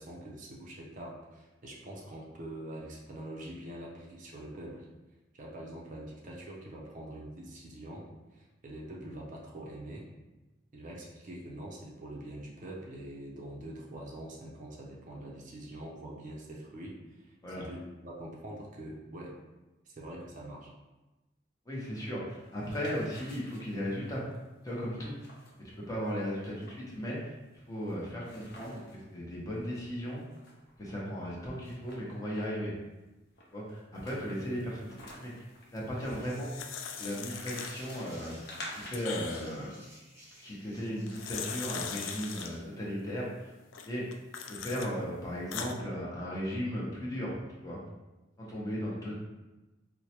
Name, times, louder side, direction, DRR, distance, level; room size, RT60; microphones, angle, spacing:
voice 1, 0.0-4.9 5.3-8.1 8.3-10.1 10.7-17.3 17.6-19.4 19.9-20.7, right 1 dB, 45° right, -2 dB, 0.5 m, -44 dB
voice 2, 21.7-24.2 24.6-25.3 25.6-27.4 27.7-30.2 30.8-32.7 33.5-35.4 35.7-36.5 37.0-38.3 38.8-39.7 40.4-43.5 43.8-44.0 44.5-47.8 48.4-49.2, equal, 20° left, -6 dB, 0.8 m, -36 dB
sound 1, 22.3-29.0 29.4-29.5 29.8-31.0 31.6-32.7 33.4-39.1, left 1 dB, 55° left, 0.7 m, -50 dB
sound 2, 36.0-38.1 38.5-39.7 40.9-42.5 43.7-44.9 45.3-45.7, left 7 dB, 85° left, 0.3 m, -41 dB
sound 3, 36.8-42.7, equal, 15° right, 0.7 m, -55 dB
4.5 x 2.1 x 2.9 m, 1.1 s
head